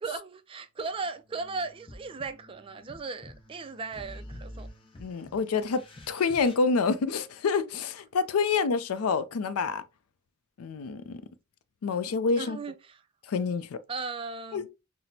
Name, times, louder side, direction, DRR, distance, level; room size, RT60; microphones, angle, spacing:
voice 1, 0.0-4.7 12.3-13.0 13.9-14.7, right 4 dB, 25° right, 0.3 m, -37 dB
sound 1, 0.8-6.6, left 1 dB, 25° left, 0.7 m, -48 dB
voice 2, 5.0-9.8 10.6-11.2 11.8-12.6 13.3-13.8 14.5-14.7, left 4 dB, 85° left, 0.4 m, -27 dB
5.8 x 2.0 x 2.7 m
head